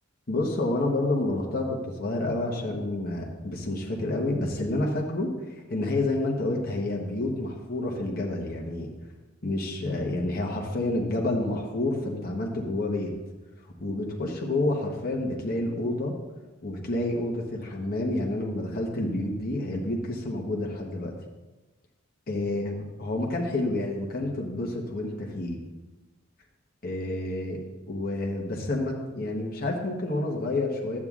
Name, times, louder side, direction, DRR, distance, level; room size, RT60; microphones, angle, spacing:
voice 1, 0.3-8.9 9.4-13.1 13.8-16.1 16.6-21.1 22.3-25.6 26.8-27.6 27.9-31.0, left 2 dB, 50° left, 0 dB, 1.1 m, -29 dB
12.5 x 8.6 x 2.4 m, 1.1 s
head